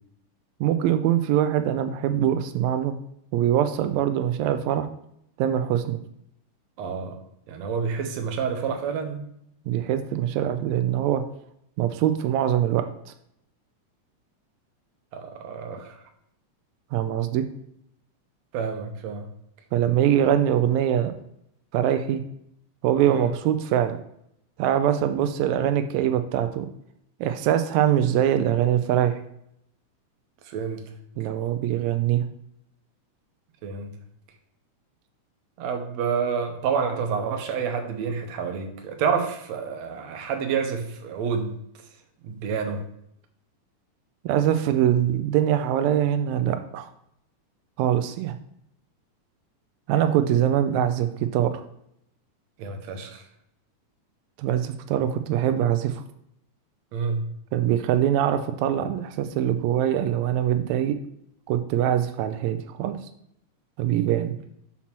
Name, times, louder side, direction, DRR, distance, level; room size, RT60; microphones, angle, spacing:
voice 1, 0.6-3.0 3.3-4.9 5.4-6.0 9.7-11.2 11.8-12.8 16.9-17.4 19.7-21.1 21.7-22.2 22.8-24.0 24.6-26.7 27.2-29.2 31.2-32.2 44.2-46.9 47.8-48.3 49.9-51.6 54.4-56.0 57.5-61.0 61.5-63.0 63.8-64.3, right 10 dB, 90° right, 8 dB, 1.6 m, -23 dB
voice 2, 6.8-7.2 7.5-9.2 15.1-16.0 18.5-19.3 23.1-23.3 30.5-30.8 33.6-33.9 35.6-41.5 42.2-42.8 52.6-53.2 56.9-57.3, right 6 dB, 70° right, 5 dB, 1.8 m, -28 dB
5.8 x 4.2 x 6.0 m, 0.74 s
omnidirectional pair, 3.7 m